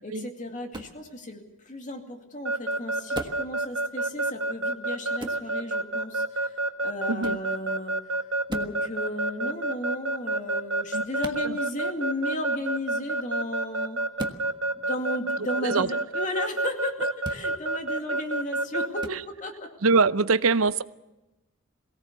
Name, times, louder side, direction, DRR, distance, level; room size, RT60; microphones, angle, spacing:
voice 1, 0.0-14.0 14.7-19.7, left 1 dB, 40° left, 3 dB, 2.3 m, -35 dB
sound 1, 0.7-1.0 3.1-3.5 5.2-5.4 7.2-7.5 8.5-8.8 11.2-11.4 14.2-14.4 17.2-17.5 19.0-19.2, right 1 dB, 20° right, 1.5 m, -36 dB
Keyboard (musical) / Alarm, 2.5-19.1, right 2 dB, 70° right, 1.3 m, -27 dB
voice 2, 7.1-7.4 10.9-11.0 11.4-11.6 15.6-15.9 19.1-19.2 19.8-20.8, right 4 dB, 85° right, 15 dB, 0.7 m, -23 dB
22.5 x 17.5 x 6.9 m, 0.98 s
head